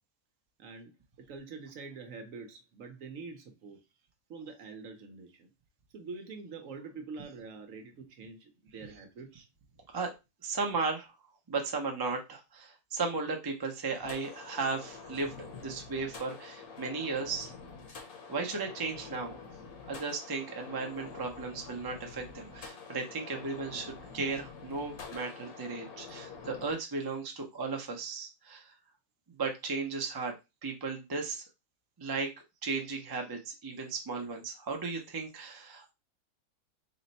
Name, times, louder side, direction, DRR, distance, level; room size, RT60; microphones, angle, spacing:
voice 1, 0.6-0.9 1.3-3.8 4.3-5.5 5.9-9.5, right 4 dB, 65° right, 1.0 m, -45 dB
voice 2, 10.4-11.1 11.5-15.3 15.6-17.5 18.3-19.4 19.8-28.7 29.4-30.3 30.6-31.4 32.0-32.3 32.6-35.9, right 4 dB, 35° right, 0.4 m, -35 dB
sound 1, 14.0-26.8, left 5 dB, 70° left, 1.3 m, -47 dB
4.1 x 2.1 x 4.0 m
omnidirectional pair, 1.6 m